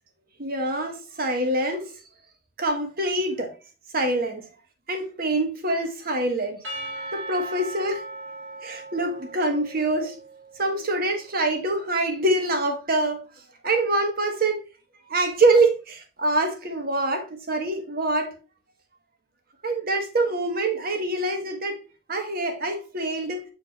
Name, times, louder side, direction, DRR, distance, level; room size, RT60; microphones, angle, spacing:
voice 1, 0.4-1.9 2.6-3.5 3.9-4.5 4.9-6.6 7.0-8.0 8.6-10.1 10.6-13.2 13.6-14.6 15.1-18.3 19.6-21.8 22.1-23.4, right 2 dB, 55° right, 1.5 m, -25 dB
Percussion / Church bell, 6.6-11.0, right 2 dB, 85° right, 2.5 m, -38 dB
7.3 x 4.4 x 3.1 m
head